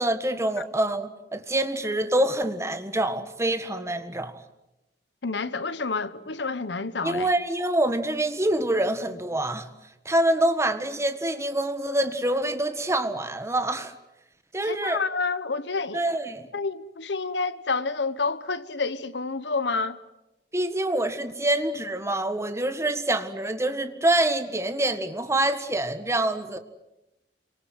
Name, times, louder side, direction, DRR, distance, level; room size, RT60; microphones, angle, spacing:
voice 1, 0.0-4.3 7.0-9.7 10.1-13.9 14.5-15.0 15.9-16.5 20.5-26.6, right 1 dB, 15° right, 1.7 m, -26 dB
voice 2, 5.2-7.3 14.6-16.0 16.5-20.0, left 4 dB, 75° left, 1.2 m, -29 dB
26.5 x 24.5 x 7.8 m
head